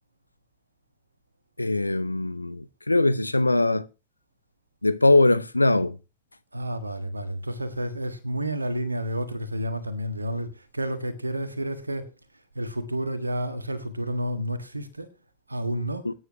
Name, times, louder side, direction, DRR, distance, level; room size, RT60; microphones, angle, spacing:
voice 1, 1.6-3.9 4.8-6.0 16.0-16.1, left 2 dB, 85° left, 0.6 m, -21 dB
voice 2, 6.5-12.1 12.5-15.1 15.5-16.1, equal, 80° right, 1.6 m, -30 dB
21.0 x 9.6 x 2.9 m
figure-of-eight pair, 90°, 0 cm